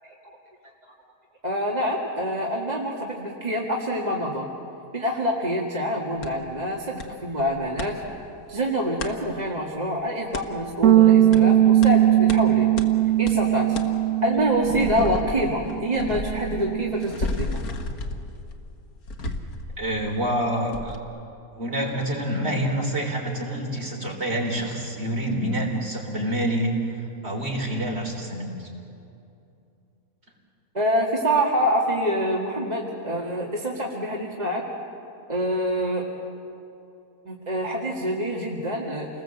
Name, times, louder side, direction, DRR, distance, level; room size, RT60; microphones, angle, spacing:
voice 1, 1.4-4.5 4.9-8.0 8.5-12.7 13.2-13.8 14.2-17.6 30.7-34.6 35.3-36.1 37.3-39.1, equal, 30° right, -3 dB, 2.1 m, -26 dB
sound 1, 6.2-6.3 7.0-7.1 7.4-7.9 9.0-9.1 10.3-10.5 11.3-11.4 11.8-11.9 12.3-12.4 12.8-12.9 13.3-13.4 13.7-13.9 14.3-20.4 20.7-21.0, left 2 dB, 80° left, 1.9 m, -32 dB
Bass guitar, 10.8-17.1, right 12 dB, 75° right, 1.2 m, -20 dB
voice 2, 19.8-21.0 21.5-28.7, right 1 dB, 45° right, 0 dB, 4.2 m, -27 dB
29.0 x 20.0 x 7.9 m, 2.7 s
omnidirectional pair, 1.5 m